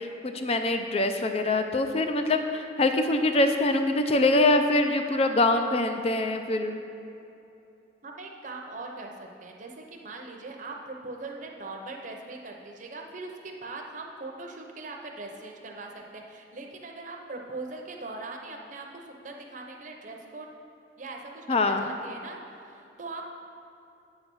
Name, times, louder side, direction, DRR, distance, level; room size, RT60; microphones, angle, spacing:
voice 1, 0.0-6.8 21.5-21.8, left 2 dB, 35° left, 6 dB, 0.5 m, -24 dB
voice 2, 8.0-20.5 21.0-23.3, right 3 dB, 45° right, 1 dB, 0.7 m, -41 dB
8.5 x 4.0 x 6.2 m, 2.8 s
head